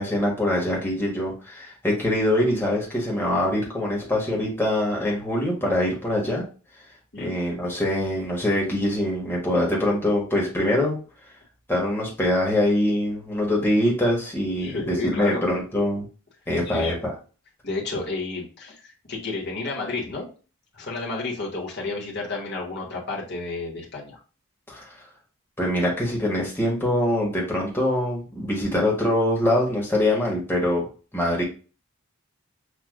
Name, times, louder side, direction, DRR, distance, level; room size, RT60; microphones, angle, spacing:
voice 1, 0.0-6.4 7.2-11.0 11.7-16.1 16.5-17.1 24.7-24.9 25.6-31.4, left 1 dB, 10° left, -3 dB, 1.1 m, -24 dB
voice 2, 14.6-15.4 16.7-16.9 17.6-20.3 20.7-24.2, left 3 dB, 45° left, -2 dB, 1.2 m, -31 dB
6.2 x 2.4 x 2.4 m, 0.36 s
head